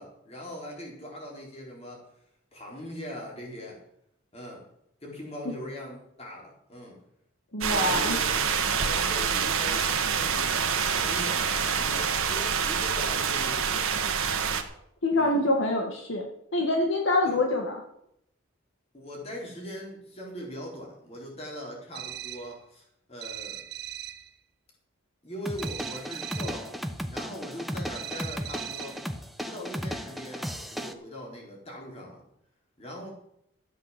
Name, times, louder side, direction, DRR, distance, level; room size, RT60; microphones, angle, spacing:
voice 1, 0.0-2.0 2.5-3.8 4.3-4.6 5.0-7.0 7.7-14.2 15.1-15.4 17.2-17.4 18.9-23.6 25.2-26.8 27.1-29.0 29.4-32.2 32.8-33.1, left 1 dB, 30° left, -2 dB, 4.4 m, -41 dB
voice 2, 7.5-8.2 15.0-16.2 16.5-17.8, left 2 dB, 65° left, 2 dB, 1.8 m, -25 dB
sound 1, 7.6-14.6, right 6 dB, 85° right, 1.5 m, -26 dB
sound 2, 21.9-22.6 23.2-24.3 25.6-26.7 27.9-29.1, right 11 dB, 50° right, 0.8 m, -39 dB
sound 3, 25.5-30.9, equal, ahead, 0.8 m, -35 dB
13.5 x 8.2 x 7.5 m, 0.76 s
head